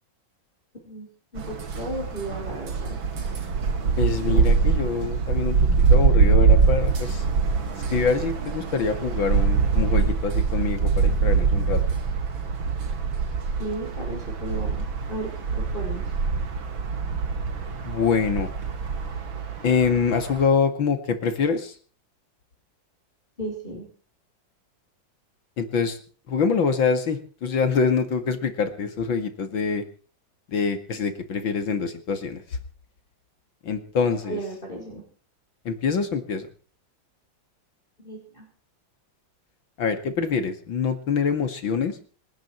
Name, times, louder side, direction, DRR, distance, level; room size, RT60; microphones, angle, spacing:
voice 1, 0.9-3.0 4.3-4.5 13.6-16.1 23.4-23.9 34.2-35.0 38.0-38.5, right 1 dB, 25° left, -1 dB, 5.4 m, -35 dB
sound 1, 1.4-20.5, right 5 dB, 90° right, 2.9 m, -23 dB
voice 2, 4.0-5.6 5.9-7.2 7.9-11.8 17.8-18.5 19.6-21.8 25.6-26.0 26.3-29.8 30.5-32.6 33.6-34.4 35.6-36.5 39.8-42.0, left 5 dB, 90° left, 8 dB, 2.9 m, -25 dB
27.0 x 10.5 x 4.6 m, 0.41 s
omnidirectional pair, 2.1 m